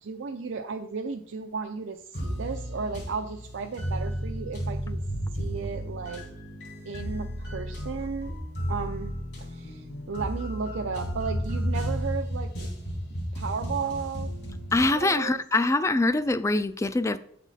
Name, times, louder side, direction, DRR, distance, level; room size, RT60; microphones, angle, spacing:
voice 1, 0.0-5.0 5.3-6.2 6.8-8.4 8.7-9.1 9.4-12.7 13.2-14.3 14.7-15.4, right 5 dB, 85° right, 0.5 m, -34 dB
sound 1, 2.1-14.9, equal, 60° left, 2.7 m, -33 dB
voice 2, 14.7-17.2, left 2 dB, 15° left, 0.3 m, -24 dB
8.9 x 6.0 x 4.2 m
head